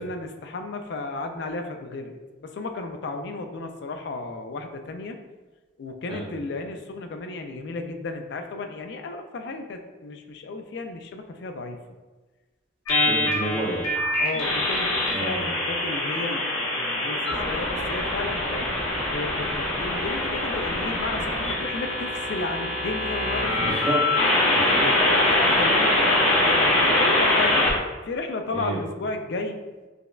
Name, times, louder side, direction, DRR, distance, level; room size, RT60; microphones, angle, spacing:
voice 1, 0.0-5.2 5.8-11.8 14.2-18.7 19.1-23.8 24.9-27.7 28.0-29.6, left 3 dB, 55° left, 6 dB, 0.3 m, -33 dB
sound 1, 12.9-27.7, left 1 dB, 90° left, 0.8 m, -23 dB
voice 2, 13.0-13.8 15.1-15.5 23.6-24.0 24.5-24.9 28.5-28.8, right 2 dB, 25° right, -4 dB, 0.6 m, -30 dB
5.0 x 2.1 x 2.3 m, 1.2 s
head